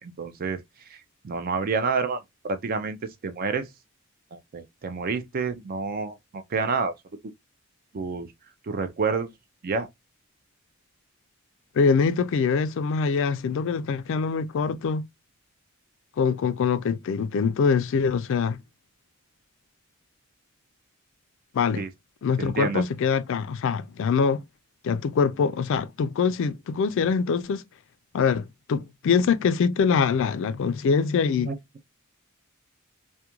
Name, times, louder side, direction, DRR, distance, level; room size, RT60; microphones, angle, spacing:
voice 1, 0.0-0.6 0.9-3.7 4.3-6.9 7.9-8.3 8.6-9.3 9.6-9.9 21.8-21.9 22.4-22.8 31.5-31.6, right 4 dB, 45° right, 0.4 m, -29 dB
voice 2, 11.8-15.1 16.2-18.6 21.5-21.8 22.2-24.4 24.8-27.6 28.1-31.5, left 5 dB, 65° left, 0.3 m, -24 dB
2.3 x 2.1 x 2.9 m
head